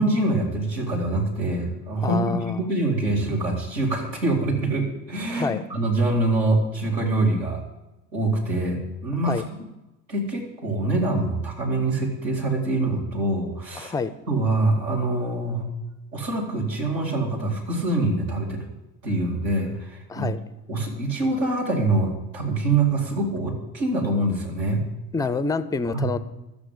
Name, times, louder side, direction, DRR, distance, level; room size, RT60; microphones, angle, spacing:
voice 1, 0.0-7.6 8.1-9.3 10.1-13.9 14.3-15.7 16.1-18.6 19.0-20.3 20.7-24.8 25.9-26.1, right 2 dB, 80° right, 0 dB, 2.5 m, -24 dB
voice 2, 2.0-2.6 5.3-5.6 9.3-9.5 13.8-14.1 20.1-20.4 25.1-26.2, left 4 dB, 10° left, 14 dB, 0.3 m, -27 dB
12.0 x 7.3 x 8.3 m, 1.0 s
figure-of-eight pair, 65°, 49 cm